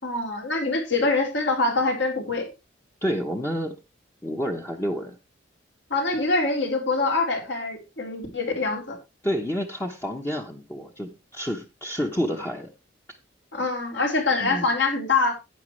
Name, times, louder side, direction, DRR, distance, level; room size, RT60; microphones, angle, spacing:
voice 1, 0.0-2.5 5.9-9.0 13.5-15.3, left 3 dB, 65° left, 2 dB, 3.7 m, -24 dB
voice 2, 3.0-3.7 4.2-5.2 9.2-12.7 14.4-14.7, equal, 15° left, 1 dB, 1.0 m, -29 dB
11.5 x 9.7 x 3.2 m, 0.25 s
head